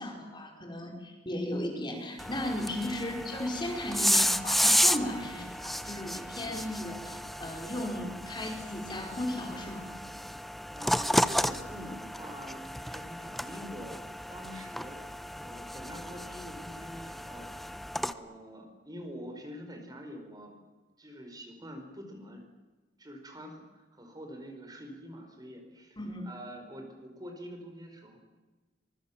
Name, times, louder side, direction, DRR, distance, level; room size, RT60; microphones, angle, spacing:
voice 1, 0.0-10.0 26.0-26.3, left 1 dB, 25° left, 2 dB, 4.8 m, -36 dB
sound 1, 2.2-18.1, equal, ahead, 0.8 m, -32 dB
voice 2, 10.7-14.0 14.3-20.5 21.0-22.4 23.0-26.0 26.2-28.2, equal, 25° right, 4 dB, 5.1 m, -46 dB
24.5 x 23.5 x 7.4 m, 1.2 s
head